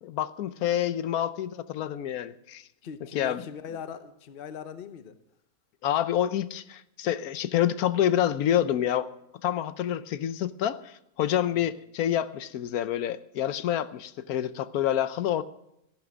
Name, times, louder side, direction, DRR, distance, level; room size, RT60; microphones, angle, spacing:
voice 1, 0.0-2.7 3.1-3.4 5.8-9.1 9.4-15.4, left 11 dB, 80° left, 1.1 m, -27 dB
voice 2, 2.8-5.2 11.5-11.8, left 7 dB, 45° left, 0.9 m, -41 dB
14.0 x 11.0 x 6.1 m
omnidirectional pair, 1.6 m